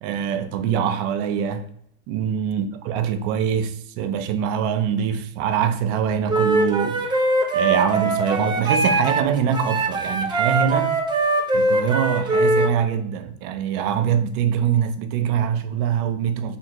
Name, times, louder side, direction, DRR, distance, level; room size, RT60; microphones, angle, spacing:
voice 1, 0.0-1.7 2.1-11.0 11.5-16.6, right 8 dB, 60° right, 0.7 m, -24 dB
Wind instrument woodwind instrument, 6.3-9.2 9.5-12.7, right 2 dB, 15° right, 0.5 m, -21 dB
2.8 x 2.8 x 4.4 m
supercardioid pair, 110°, 36 cm